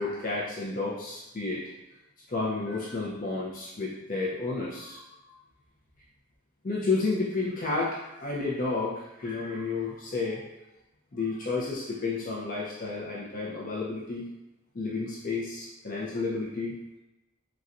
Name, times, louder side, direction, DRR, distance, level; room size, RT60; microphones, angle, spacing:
voice 1, 0.0-1.6 2.3-5.4 6.6-10.4 11.1-14.3 14.7-16.7, left 3 dB, 40° left, -5 dB, 0.5 m, -31 dB
4.0 x 2.3 x 2.4 m, 0.97 s
head